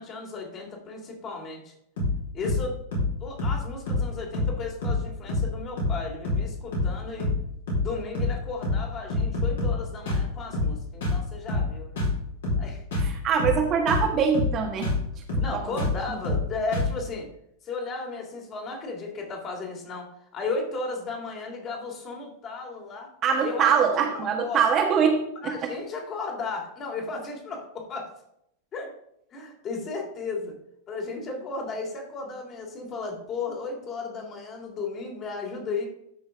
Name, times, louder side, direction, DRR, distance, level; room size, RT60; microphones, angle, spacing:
voice 1, 0.0-1.7 2.3-2.8 3.2-7.3 7.7-12.1 12.6-12.8 15.4-17.3 17.6-23.1 23.4-23.7 24.1-24.6 25.4-28.1 28.7-28.9 29.3-30.5 30.9-35.9, left 4 dB, 30° left, 0 dB, 3.1 m, -34 dB
sound 1, 2.0-2.2 2.4-2.6 2.9-3.1 3.4-3.6 3.9-4.1 4.3-4.6 4.8-5.0 5.3-5.5 5.8-6.0 6.2-6.5 6.7-6.9 7.2-7.4 7.7-7.9 8.1-8.4 8.6-8.8 9.1-9.8 10.0-10.3 10.5-10.7 11.0-11.2 11.5-11.7 12.0-12.2 12.4-12.6 12.9-13.1 13.4-13.6 13.9-14.1 14.3-14.6 14.8-15.0 15.3-15.5 15.8-16.0 16.2-16.5 16.7-16.9, left 2 dB, 60° left, 4.5 m, -26 dB
voice 2, 13.0-14.9 15.5-15.7 23.2-25.7, right 6 dB, 30° right, 2 dB, 1.6 m, -23 dB
13.5 x 6.3 x 3.7 m, 0.74 s
figure-of-eight pair, 90°, 0 cm